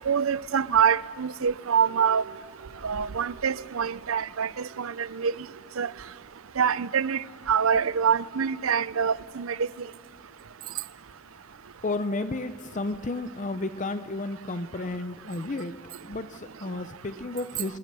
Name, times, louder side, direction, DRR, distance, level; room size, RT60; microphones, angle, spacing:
voice 1, 0.1-2.2 2.8-4.5 4.8-4.9 5.2-5.3 5.8-5.9 6.6-7.2 7.5-9.5, right 7 dB, 75° right, 0.6 m, -25 dB
voice 2, 11.8-17.8, left 2 dB, 35° left, 0.6 m, -32 dB
28.5 x 24.5 x 6.9 m
head